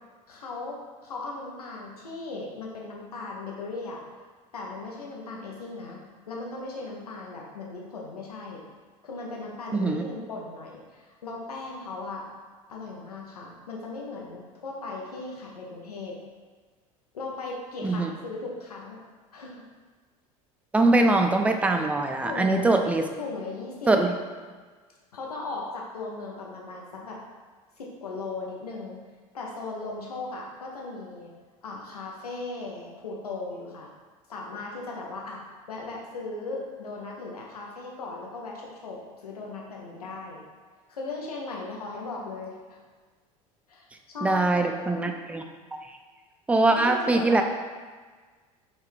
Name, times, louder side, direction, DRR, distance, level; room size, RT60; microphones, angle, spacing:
voice 1, 0.3-4.0 4.5-6.0 6.3-8.6 9.0-12.2 12.7-16.2 17.1-19.0 19.3-19.6 22.2-22.7 23.2-23.9 25.1-27.2 27.8-29.0 29.3-31.3 31.6-33.9 34.3-35.4 35.7-40.4 40.9-42.8 43.7-45.1 46.7-47.4, left 3 dB, 90° left, -2 dB, 0.7 m, -37 dB
voice 2, 9.7-10.0 17.8-18.1 20.7-23.0 23.9-24.1 44.2-45.4 45.9-46.0 46.5-47.4, right 2 dB, 5° right, 4 dB, 0.3 m, -22 dB
4.0 x 2.3 x 3.2 m, 1.5 s
hypercardioid pair, 75°, 19 cm